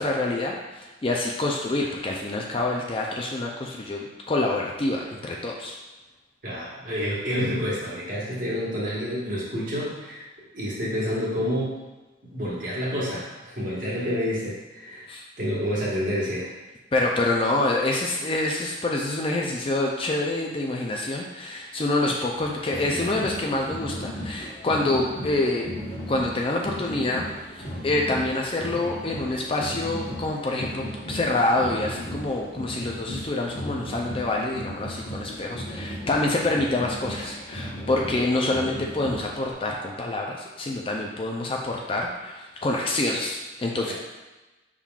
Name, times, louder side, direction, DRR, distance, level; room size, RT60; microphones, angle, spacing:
voice 1, 0.0-5.7 15.1-15.2 16.9-25.7 26.1-27.3 27.6-43.9, left 2 dB, 30° left, 0 dB, 0.4 m, -26 dB
voice 2, 6.4-10.2 10.5-11.8 12.2-15.1 15.4-16.5 43.9-44.0, equal, 45° right, -7 dB, 1.3 m, -28 dB
sound 1, 22.3-39.5, equal, 50° left, 1.2 m, -36 dB
5.8 x 3.6 x 2.4 m, 1.1 s
head